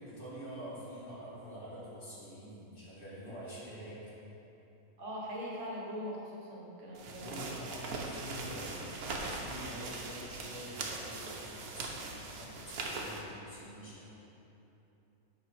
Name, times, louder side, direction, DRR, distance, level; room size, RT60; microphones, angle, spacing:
voice 1, 0.1-4.0 7.1-8.9 9.3-14.1, equal, 40° left, -8 dB, 1.8 m, -46 dB
voice 2, 5.0-7.5, equal, 55° right, -4 dB, 1.4 m, -41 dB
sound 1, 6.9-13.2, right 3 dB, 85° right, 1.3 m, -41 dB
8.3 x 5.5 x 4.3 m, 3.0 s
omnidirectional pair, 1.6 m